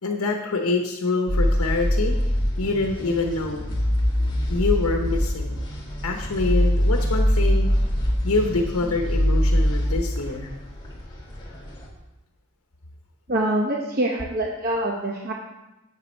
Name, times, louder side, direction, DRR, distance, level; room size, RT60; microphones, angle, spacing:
voice 1, 0.0-2.1 2.6-3.7 4.5-5.6 6.0-7.7 8.2-10.5, left 3 dB, 85° left, 2 dB, 1.0 m, -25 dB
sound 1, 1.3-11.9, equal, 20° left, 1.8 m, -23 dB
voice 2, 13.3-15.3, right 1 dB, 40° right, -1 dB, 0.9 m, -25 dB
8.7 x 7.6 x 5.3 m, 0.97 s
head